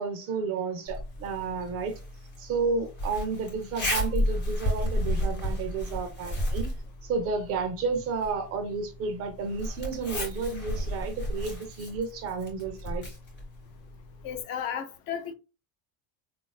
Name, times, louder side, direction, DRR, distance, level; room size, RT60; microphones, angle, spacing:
voice 1, 0.0-1.9 2.4-6.7 7.0-13.1, right 4 dB, 35° right, 0.4 m, -31 dB
Zipper (clothing), 0.9-14.4, equal, 25° left, 0.8 m, -33 dB
voice 2, 14.2-15.3, left 8 dB, 60° left, 0.6 m, -34 dB
3.8 x 2.4 x 2.2 m
cardioid pair, 175°, 41 cm